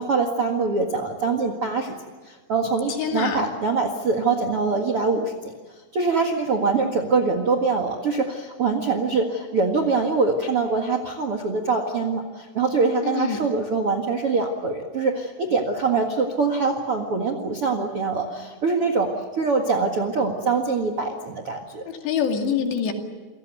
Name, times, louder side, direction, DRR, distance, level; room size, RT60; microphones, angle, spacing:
voice 1, 0.0-1.9 2.2-5.5 5.9-19.1 19.4-21.8, right 4 dB, 50° right, 5 dB, 1.6 m, -24 dB
voice 2, 3.0-3.5 13.0-13.4 21.9-22.9, left 7 dB, 70° left, 3 dB, 4.4 m, -25 dB
29.0 x 18.5 x 9.3 m, 1.3 s
omnidirectional pair, 5.4 m